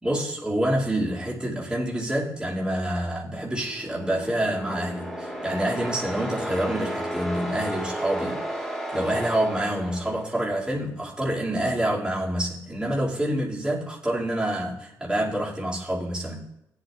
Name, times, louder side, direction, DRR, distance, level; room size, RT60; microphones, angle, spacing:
voice 1, 0.0-16.4, right 1 dB, 15° right, -5 dB, 2.2 m, -27 dB
sound 1, 3.5-10.6, right 1 dB, 5° left, 2.2 m, -33 dB
18.0 x 7.9 x 2.3 m, 0.89 s
cardioid pair, 85°, 7 cm